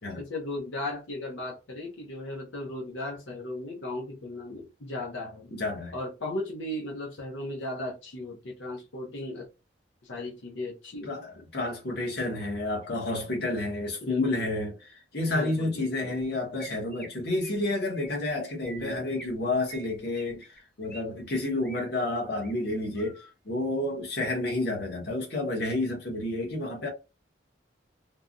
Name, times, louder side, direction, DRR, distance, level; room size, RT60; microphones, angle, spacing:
voice 1, 0.1-5.5 5.9-9.4 10.0-11.1 11.4-11.5 14.0-14.5 15.3-16.2 18.8-19.2, left 1 dB, 85° left, 0.8 m, -36 dB
voice 2, 5.5-5.9 11.0-26.9, left 2 dB, 55° left, 1.2 m, -30 dB
Chirp tweet, 16.6-17.1 17.4-17.6 18.0-18.3 18.6-19.3 19.7-21.0 21.3-21.8 22.3-22.5 23.0-23.3, right 1 dB, 5° left, 0.6 m, -47 dB
3.3 x 2.2 x 2.5 m
head